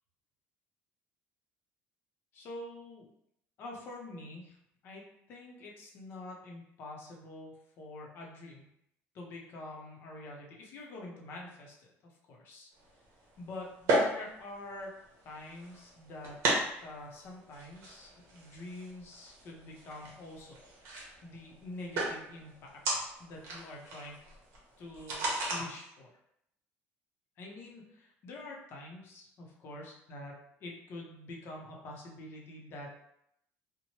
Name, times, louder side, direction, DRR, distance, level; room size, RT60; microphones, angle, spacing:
voice 1, 2.3-3.1 3.6-4.6 4.8-8.7 9.1-12.7 13.4-15.0 15.2-16.5 16.8-24.3 24.8-26.1 27.4-30.3 30.6-33.0, left 2 dB, 45° left, -2 dB, 0.7 m, -46 dB
sound 1, 12.8-25.6, right 1 dB, 60° right, 0.9 m, -36 dB
2.9 x 2.1 x 2.8 m, 0.77 s
cardioid pair, 150°, 5 cm